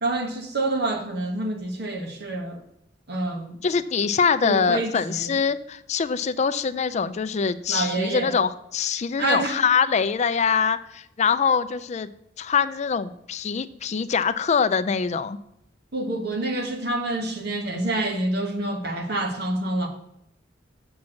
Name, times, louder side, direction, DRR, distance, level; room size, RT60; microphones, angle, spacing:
voice 1, 0.0-2.6 3.1-3.6 4.4-5.3 7.7-8.3 9.2-9.6 15.9-19.9, right 2 dB, 60° right, 1.5 m, -27 dB
voice 2, 3.6-12.1 12.4-15.4, left 6 dB, 40° left, 0.4 m, -24 dB
7.2 x 6.0 x 6.3 m
head